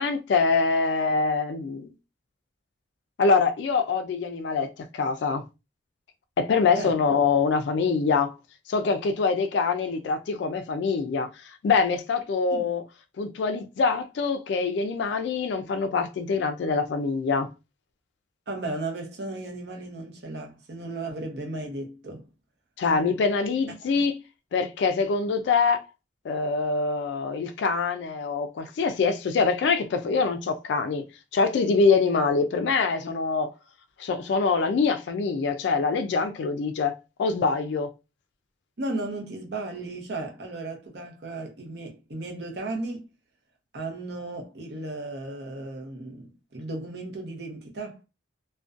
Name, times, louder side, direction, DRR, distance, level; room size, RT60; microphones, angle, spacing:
voice 1, 0.0-1.9 3.2-5.4 6.4-8.4 8.7-11.3 11.6-12.8 13.2-17.5 22.8-24.1 24.5-25.8 26.2-31.0 31.3-33.5 34.0-37.9, left 4 dB, 65° left, 0.3 m, -24 dB
voice 2, 18.5-22.3 23.9-24.1 38.8-43.1 43.7-48.0, right 2 dB, 60° right, 0.7 m, -35 dB
2.4 x 2.2 x 2.4 m
head